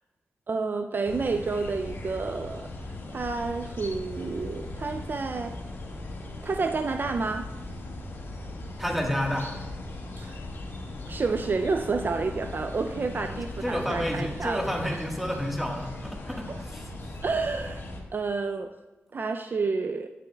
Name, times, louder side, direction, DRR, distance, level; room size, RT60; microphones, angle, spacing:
voice 1, 0.5-2.7 3.1-5.6 6.4-7.5 10.2-10.4 11.1-14.6 16.5-16.6 17.2-17.9 18.1-18.7 19.1-20.1, right 4 dB, 50° right, 8 dB, 0.3 m, -29 dB
sound 1, 1.0-18.0, left 2 dB, 60° left, 1.4 m, -38 dB
voice 2, 8.8-9.5 13.2-16.9, equal, 5° right, 1 dB, 1.4 m, -30 dB
8.9 x 8.2 x 2.3 m, 1.2 s
cardioid pair, 55°, 4 cm